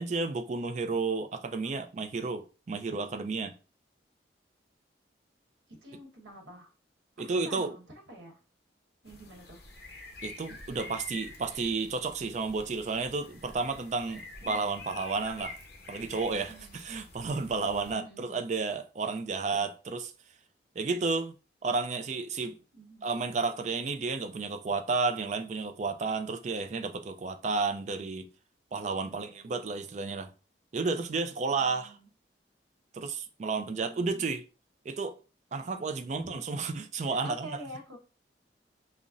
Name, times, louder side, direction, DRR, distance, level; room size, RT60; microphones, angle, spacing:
voice 1, 0.0-3.5 7.2-7.8 10.2-15.6 15.9-20.1 20.8-21.3 21.6-22.6 23.0-28.3 28.7-30.3 30.7-32.0 32.9-34.4 34.9-35.1 35.5-37.6, right 4 dB, 40° right, 0.3 m, -32 dB
voice 2, 5.8-6.7 7.2-8.4 9.0-9.6 14.4-14.7 16.5-16.8 17.6-18.5 22.7-23.1 29.0-29.5 31.6-32.1 33.6-34.2 36.2-36.4 37.2-38.0, right 1 dB, 85° right, 1.1 m, -48 dB
sound 1, 9.1-17.9, left 3 dB, 60° left, 0.7 m, -47 dB
5.2 x 2.1 x 2.4 m
head